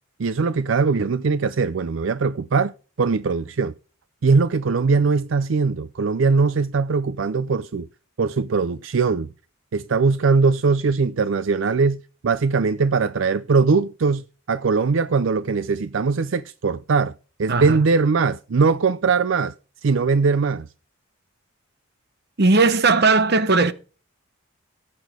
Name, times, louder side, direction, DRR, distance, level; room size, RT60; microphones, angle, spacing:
voice 1, 0.2-2.7 3.0-3.7 4.2-7.9 8.2-9.3 9.7-14.2 14.5-17.1 17.4-19.5 19.8-20.7, right 4 dB, 65° right, 0.5 m, -20 dB
voice 2, 17.5-17.9 22.4-23.7, right 3 dB, 50° right, 1.0 m, -17 dB
16.5 x 8.6 x 3.7 m
head